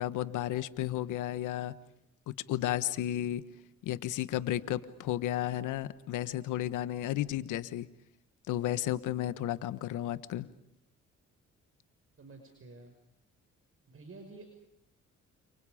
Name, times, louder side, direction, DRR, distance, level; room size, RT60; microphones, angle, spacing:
voice 1, 0.0-1.7 2.3-3.4 3.8-7.9 8.5-10.5, left 13 dB, 90° left, 14 dB, 1.3 m, -33 dB
voice 2, 12.2-12.9 13.9-14.5, right 3 dB, 45° right, 4 dB, 5.6 m, -50 dB
29.5 x 29.0 x 5.1 m, 0.78 s
cardioid pair, 90°, 30 cm